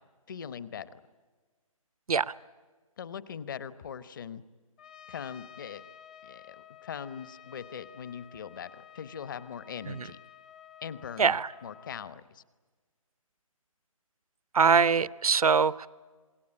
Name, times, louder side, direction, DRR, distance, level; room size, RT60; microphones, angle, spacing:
voice 1, 0.3-0.9 3.0-4.4 5.1-5.8 6.2-6.6 6.8-10.2 10.8-12.4, left 7 dB, 35° left, 15 dB, 1.0 m, -41 dB
Trumpet, 4.8-12.1, left 9 dB, 15° left, 0.7 m, -52 dB
voice 2, 11.2-11.5 14.5-15.9, right 5 dB, 90° right, 18 dB, 0.8 m, -23 dB
27.0 x 21.0 x 9.8 m, 1.4 s
hypercardioid pair, 165°, 18 cm